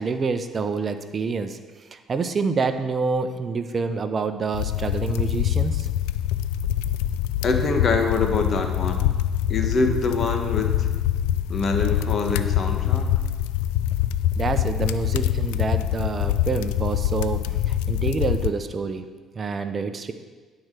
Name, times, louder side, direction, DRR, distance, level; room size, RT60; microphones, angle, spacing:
voice 1, 0.0-5.9 14.3-19.1 19.3-20.1, right 4 dB, 40° right, 9 dB, 0.7 m, -27 dB
sound 1, 4.5-18.5, left 11 dB, 90° left, 0.3 m, -24 dB
voice 2, 7.4-9.1 9.5-10.9 11.5-13.1, left 3 dB, 45° left, 4 dB, 1.3 m, -25 dB
10.5 x 4.7 x 6.6 m, 1.4 s
supercardioid pair, 70°, 0 cm